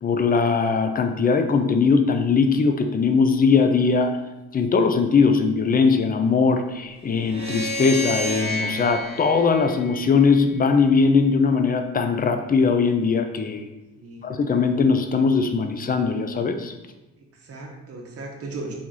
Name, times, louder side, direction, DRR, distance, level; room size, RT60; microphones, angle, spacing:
voice 1, 0.0-4.2 4.5-13.7 14.2-16.7, left 5 dB, 30° left, 7 dB, 0.5 m, -20 dB
sound 1, 7.2-10.5, left 1 dB, 20° right, 1.1 m, -30 dB
voice 2, 17.2-18.8, right 2 dB, 50° right, 0 dB, 0.9 m, -36 dB
4.2 x 3.1 x 3.7 m, 1.0 s
cardioid pair, 90°, 30 cm